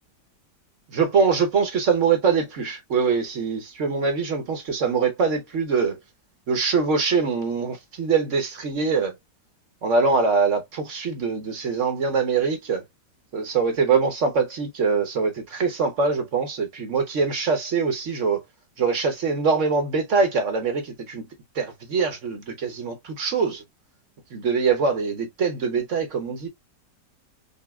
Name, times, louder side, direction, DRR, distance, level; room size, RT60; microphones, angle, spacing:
voice 1, 0.9-6.0 6.5-9.1 9.8-12.8 13.3-18.4 18.8-21.2 21.6-23.6 24.3-26.5, right 5 dB, 55° right, 1.1 m, -23 dB
5.3 x 2.4 x 2.2 m
omnidirectional pair, 1.8 m